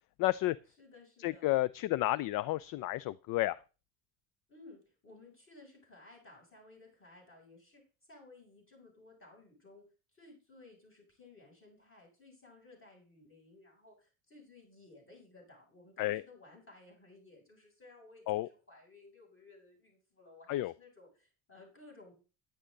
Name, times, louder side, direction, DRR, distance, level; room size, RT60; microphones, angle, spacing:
voice 1, 0.2-0.6 1.2-3.6 16.0-16.2 18.3-18.5 20.5-20.7, left 17 dB, 50° left, 20 dB, 0.4 m, -31 dB
voice 2, 0.8-1.6 4.5-7.8 8.1-9.8 10.1-22.1, left 2 dB, 30° left, -1 dB, 7.3 m, -57 dB
10.0 x 9.9 x 3.9 m, 0.34 s
supercardioid pair, 85°, 44 cm